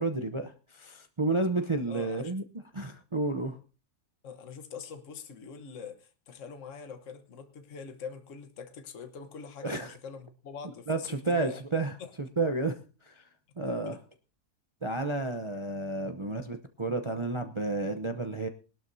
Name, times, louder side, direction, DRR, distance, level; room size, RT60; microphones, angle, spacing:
voice 1, 0.0-3.6 9.6-10.0 10.9-13.3 13.6-14.0 14.8-18.5, right 2 dB, 40° right, 7 dB, 0.4 m, -31 dB
voice 2, 1.9-2.3 4.2-11.6 12.0-12.1 13.7-14.0 16.0-16.2, left 6 dB, 55° left, 8 dB, 1.4 m, -44 dB
20.5 x 12.0 x 2.7 m, 0.34 s
omnidirectional pair, 1.7 m